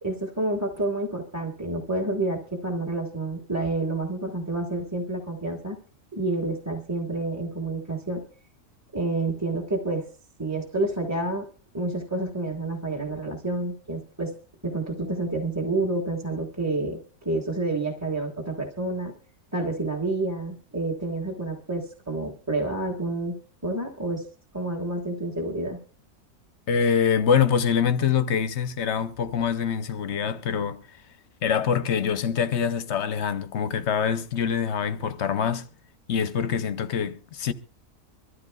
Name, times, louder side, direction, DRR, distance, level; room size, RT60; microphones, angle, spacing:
voice 1, 0.0-5.8 6.1-8.2 8.9-10.0 10.4-11.5 11.7-14.3 14.6-19.1 19.5-23.3 23.6-24.3 24.5-25.8, right 2 dB, 10° right, 1.4 m, -29 dB
voice 2, 26.7-30.8 31.4-35.7 36.1-37.5, left 7 dB, 55° left, 0.9 m, -25 dB
24.0 x 13.5 x 2.3 m
omnidirectional pair, 1.6 m